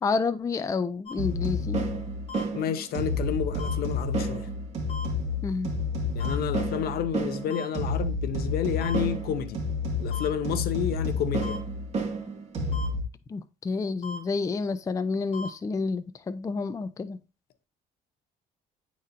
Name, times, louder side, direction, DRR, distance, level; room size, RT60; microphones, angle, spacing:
voice 1, 0.0-1.8 5.4-5.7 13.3-17.2, left 4 dB, 20° left, 0.4 m, -29 dB
sound 1, 1.1-1.2 2.3-2.4 3.6-3.7 4.9-5.1 6.2-6.3 7.5-7.7 8.8-9.0 10.1-10.3 11.4-11.6 12.7-12.9 14.0-14.2 15.3-15.5, left 3 dB, 35° left, 2.8 m, -37 dB
sound 2, 1.2-13.0, left 1 dB, 40° right, 2.0 m, -30 dB
voice 2, 2.5-4.5 6.1-9.6 10.0-11.6, left 8 dB, 65° left, 0.7 m, -30 dB
10.0 x 4.1 x 2.6 m
cardioid pair, 110°, 17 cm